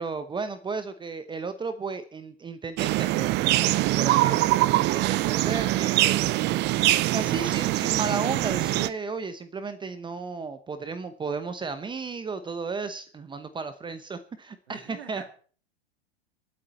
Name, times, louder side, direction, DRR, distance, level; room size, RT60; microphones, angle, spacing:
voice 1, 0.0-3.5 4.0-6.2 7.1-15.3, right 4 dB, 15° right, 11 dB, 0.9 m, -34 dB
sound 1, 2.8-8.9, right 16 dB, 35° right, 0.7 m, -23 dB
voice 2, 14.7-15.3, right 7 dB, 80° right, 5 dB, 3.0 m, -44 dB
25.5 x 8.7 x 4.2 m, 0.43 s
hypercardioid pair, 110°, 31 cm